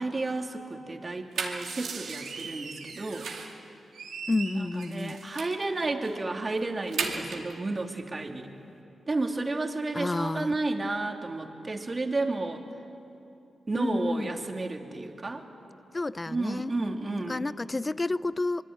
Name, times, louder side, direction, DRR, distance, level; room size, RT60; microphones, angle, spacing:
voice 1, 0.0-3.3 4.5-8.5 9.1-12.6 13.7-15.4 16.3-17.5, right 2 dB, 40° right, 3 dB, 3.1 m, -32 dB
sound 1, 1.1-3.6 3.9-5.6 6.0-6.2 6.5-7.5, right 5 dB, 75° right, 2.6 m, -37 dB
voice 2, 4.3-5.2 9.9-10.6 13.8-14.3 15.9-16.7 17.3-18.6, left 2 dB, 30° left, 18 dB, 0.6 m, -30 dB
26.5 x 22.0 x 9.5 m, 2.8 s
supercardioid pair, 40°, 0 cm